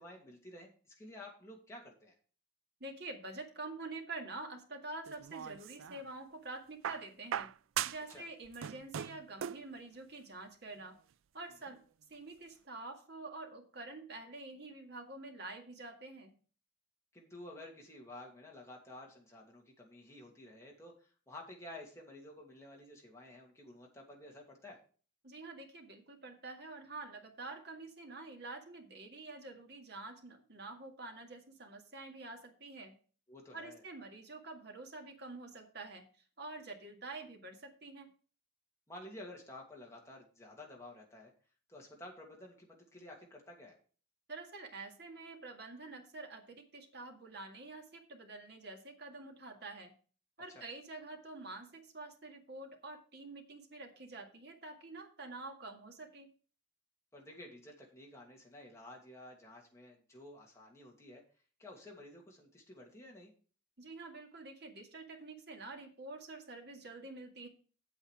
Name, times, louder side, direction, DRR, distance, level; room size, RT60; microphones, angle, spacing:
voice 1, 0.0-2.1 8.1-8.2 11.6-11.7 17.1-24.8 33.3-33.8 38.9-41.3 41.7-43.8 50.5-50.6 57.1-61.2 61.6-63.3, left 1 dB, 15° left, -1 dB, 2.6 m, -52 dB
voice 2, 2.8-7.5 7.9-11.0 11.3-11.8 12.1-16.3 25.2-32.9 33.5-36.0 36.4-38.1 44.3-49.9 50.4-56.3 63.8-67.5, right 2 dB, 55° right, 3 dB, 2.0 m, -47 dB
sound 1, 5.1-6.0 6.8-8.2 8.4-9.7 10.8-10.9, right 9 dB, 90° right, 0.4 m, -39 dB
8.3 x 7.8 x 4.9 m, 0.39 s
head